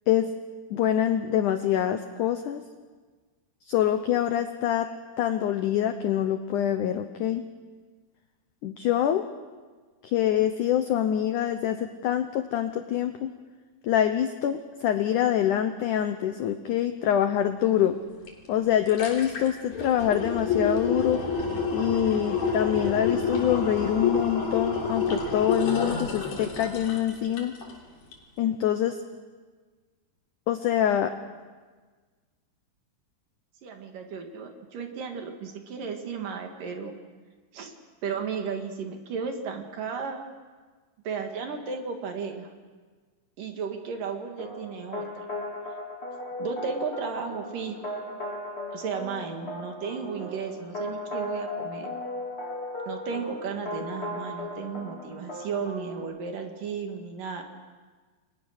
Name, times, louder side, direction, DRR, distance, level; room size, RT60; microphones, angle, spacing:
voice 1, 0.7-2.6 3.7-4.9 5.2-7.4 8.6-9.3 10.0-13.3 13.8-18.0 18.5-21.2 21.7-27.5 28.4-29.0 30.5-31.1, left 10 dB, 85° left, 8 dB, 1.8 m, -25 dB
sound 1, 18.3-18.4 18.7-27.8 28.1-28.2, left 4 dB, 55° left, 5.1 m, -29 dB
voice 2, 33.6-36.9 37.5-37.7 38.0-40.2 41.0-42.5 43.4-45.1 46.4-47.9 48.7-51.9 52.9-57.4, right 5 dB, 60° right, 4 dB, 3.2 m, -34 dB
sound 2, 44.4-56.0, left 1 dB, 15° left, 2.8 m, -36 dB
29.5 x 22.0 x 6.5 m, 1.4 s
omnidirectional pair, 4.8 m